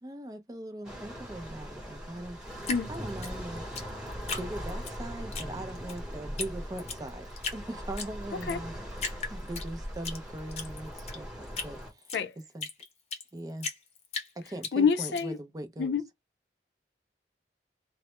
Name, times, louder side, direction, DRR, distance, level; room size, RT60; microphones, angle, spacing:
voice 1, 0.0-3.6 4.4-12.1 12.5-12.7 13.3-13.7 14.4-16.0, right 1 dB, 20° right, 0.4 m, -40 dB
sound 1, 0.8-11.9, equal, 5° right, 0.8 m, -40 dB
Drip, 2.6-4.9 5.3-6.0 6.4-6.5 6.8-7.6 8.0-8.6 9.0-10.2 10.5-13.3 13.6-15.2, left 4 dB, 35° left, 0.6 m, -37 dB
voice 2, 14.7-15.4 15.8-16.0, left 6 dB, 70° left, 0.4 m, -26 dB
2.1 x 2.1 x 2.9 m
head